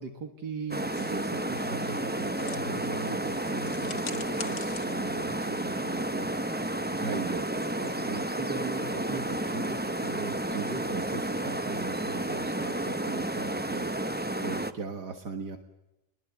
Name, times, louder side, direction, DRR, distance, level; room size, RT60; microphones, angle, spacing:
voice 1, 0.0-6.3 6.9-13.9 14.4-15.6, right 4 dB, 75° right, 5 dB, 2.2 m, -39 dB
sound 1, 0.7-14.7, right 1 dB, 15° right, 0.4 m, -31 dB
sound 2, 0.9-6.2, left 7 dB, 75° left, 1.9 m, -46 dB
23.5 x 21.0 x 8.3 m, 0.93 s
omnidirectional pair, 1.8 m